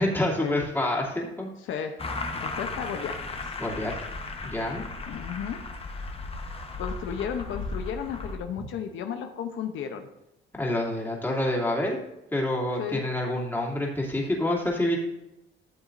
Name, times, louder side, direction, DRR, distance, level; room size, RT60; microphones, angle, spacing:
voice 1, 0.0-1.5 3.6-4.0 4.4-4.8 10.5-12.0 12.3-15.0, left 1 dB, 10° left, -3 dB, 2.6 m, -27 dB
voice 2, 1.6-2.0 2.4-3.1 3.4-3.5 5.1-5.6 6.8-10.1 12.8-13.0 14.9-15.0, left 8 dB, 80° left, 6 dB, 0.8 m, -33 dB
sound 1, 2.0-8.4, left 3 dB, 30° left, 1.1 m, -35 dB
13.5 x 7.2 x 2.6 m, 0.93 s
cardioid pair, 90°, 20 cm